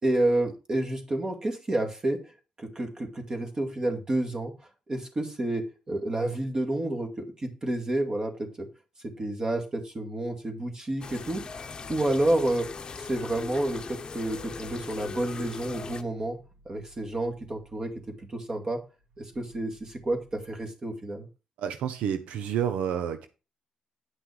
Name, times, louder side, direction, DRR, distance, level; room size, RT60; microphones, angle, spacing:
voice 1, 0.0-2.2 2.6-4.5 4.9-8.7 9.0-11.6 11.9-12.7 13.0-16.4 16.7-17.9 18.3-18.8 19.2-21.3, right 1 dB, 35° right, 2.2 m, -29 dB
sound 1, 11.0-16.0, left 5 dB, 40° left, 0.9 m, -40 dB
sound 2, 15.9-20.6, right 1 dB, 70° right, 3.1 m, -58 dB
voice 2, 21.6-23.3, right 9 dB, 85° right, 0.8 m, -29 dB
9.9 x 6.0 x 4.9 m
cardioid pair, 90°, 2 cm